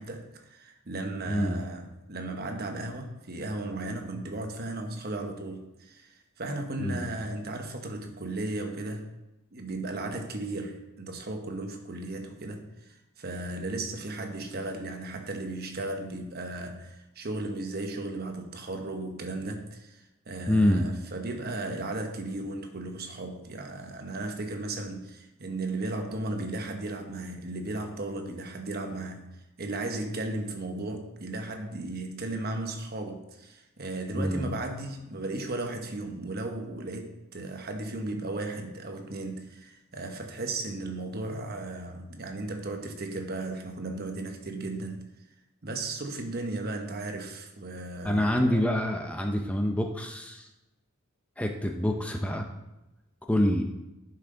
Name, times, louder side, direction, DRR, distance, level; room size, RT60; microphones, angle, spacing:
voice 1, 0.0-9.0 9.5-29.3 29.6-45.1 45.6-48.3, right 2 dB, 50° right, 4 dB, 1.1 m, -35 dB
voice 2, 1.3-1.6 6.8-7.1 20.5-20.9 34.1-34.5 48.0-50.5 51.4-52.4 53.3-53.7, equal, 5° left, 3 dB, 0.5 m, -26 dB
10.5 x 5.8 x 3.8 m, 0.96 s
head